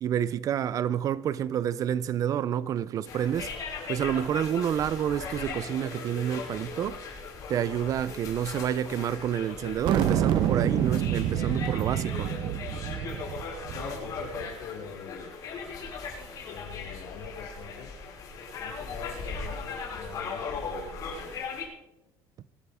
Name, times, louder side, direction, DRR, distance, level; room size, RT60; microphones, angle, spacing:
voice 1, 0.0-3.5 3.9-7.0 7.5-12.3, right 9 dB, 40° right, 0.5 m, -29 dB
sound 1, 3.0-21.6, left 4 dB, 40° left, 5.6 m, -38 dB
sound 2, 9.8-14.5, right 9 dB, 55° right, 1.0 m, -28 dB
voice 2, 13.7-15.3 16.4-18.0 18.6-21.4, left 7 dB, 80° left, 5.1 m, -44 dB
23.5 x 12.5 x 3.6 m
cardioid pair, 155°, 9 cm